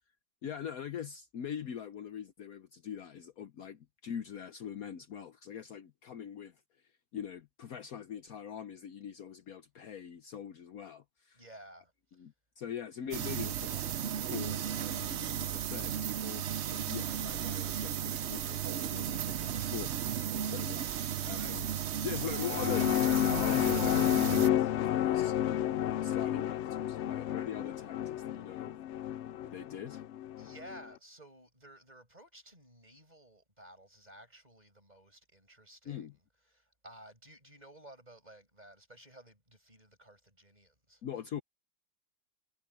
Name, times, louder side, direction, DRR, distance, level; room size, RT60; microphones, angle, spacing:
voice 1, 0.4-6.6 7.1-11.4 12.2-13.9 14.2-28.8 29.4-30.0 35.9-36.2 41.0-41.4, left 9 dB, 65° left, 1.2 m, -43 dB
voice 2, 11.3-12.2 26.9-27.2 30.4-36.1 36.5-41.0, right 1 dB, 25° right, 7.4 m, -55 dB
sound 1, 13.1-24.5, right 10 dB, 60° right, 0.7 m, -35 dB
sound 2, 22.2-30.8, left 11 dB, 85° left, 0.6 m, -31 dB
omnidirectional pair, 1.8 m